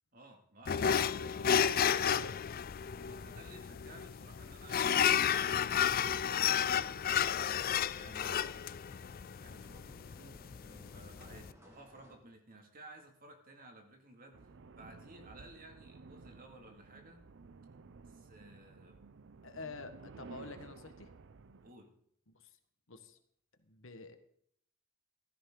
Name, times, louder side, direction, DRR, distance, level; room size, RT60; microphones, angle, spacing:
voice 1, 0.1-1.7 3.0-5.8 6.3-7.2 7.9-8.5 9.4-17.2 18.1-19.0 20.4-20.7 21.6-21.9, right 2 dB, 45° right, 4 dB, 2.3 m, -56 dB
sound 1, 0.7-11.5, left 8 dB, 45° left, 0.4 m, -32 dB
voice 2, 1.1-1.8 2.0-2.4 19.4-21.1 22.3-22.5 22.9-23.2 23.6-24.2, left 3 dB, 65° left, 8 dB, 1.4 m, -49 dB
sound 2, 5.7-12.2, equal, 15° right, 2.1 m, -62 dB
sound 3, 14.3-21.7, right 4 dB, 60° right, 0.6 m, -54 dB
15.0 x 13.0 x 3.9 m, 0.67 s
head